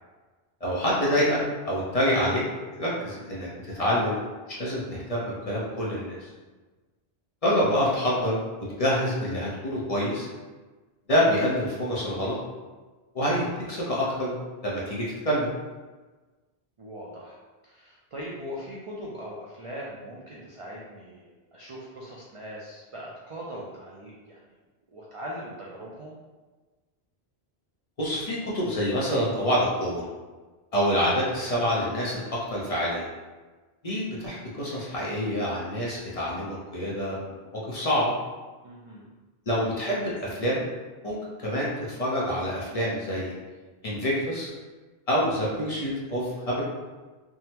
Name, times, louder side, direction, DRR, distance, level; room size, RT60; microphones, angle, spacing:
voice 1, 0.6-1.4 1.6-2.4 2.8-4.2 4.5-6.2 7.4-8.4 8.8-10.3 11.1-12.4 13.1-14.3 14.6-15.5 28.0-30.0 30.7-33.1 33.8-38.1 39.5-40.6 41.0-43.3 43.8-44.5 45.1-46.6, equal, 40° left, -6 dB, 0.7 m, -26 dB
voice 2, 3.0-3.4 16.8-17.4 17.6-24.4 24.9-26.2 38.6-39.1, equal, 55° right, -5 dB, 0.3 m, -40 dB
3.5 x 2.0 x 2.8 m, 1.3 s
omnidirectional pair, 1.1 m